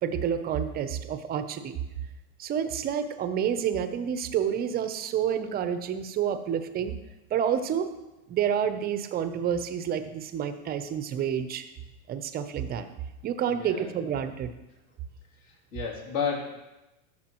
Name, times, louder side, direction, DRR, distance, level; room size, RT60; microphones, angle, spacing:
voice 1, 0.0-1.8 2.4-7.0 7.3-7.9 8.3-11.6 12.1-12.9 13.2-14.5, right 8 dB, 25° right, 10 dB, 0.5 m, -29 dB
voice 2, 13.5-13.9 15.4-16.6, left 6 dB, 55° left, -2 dB, 2.9 m, -32 dB
13.0 x 6.2 x 3.0 m, 0.98 s
hypercardioid pair, 120°, 42 cm